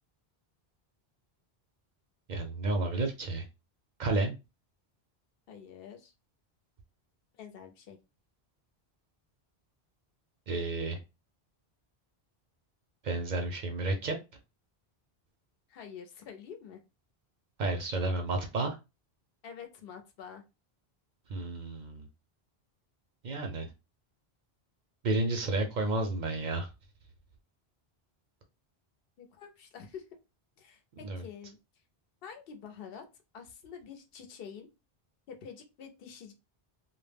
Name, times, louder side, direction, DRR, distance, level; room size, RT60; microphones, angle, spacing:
voice 1, 2.3-3.5 4.0-4.3 10.5-11.0 13.0-14.2 17.6-18.8 21.3-22.1 23.2-23.7 25.0-26.7 31.0-31.2, right 2 dB, 55° right, 4 dB, 0.5 m, -31 dB
voice 2, 5.5-6.1 7.3-8.0 15.7-16.8 19.4-20.4 29.2-30.1 30.6-31.6 32.2-33.1 33.3-34.7 35.3-36.3, left 7 dB, 70° left, 5 dB, 0.8 m, -47 dB
2.1 x 2.0 x 3.3 m, 0.26 s
omnidirectional pair, 1.1 m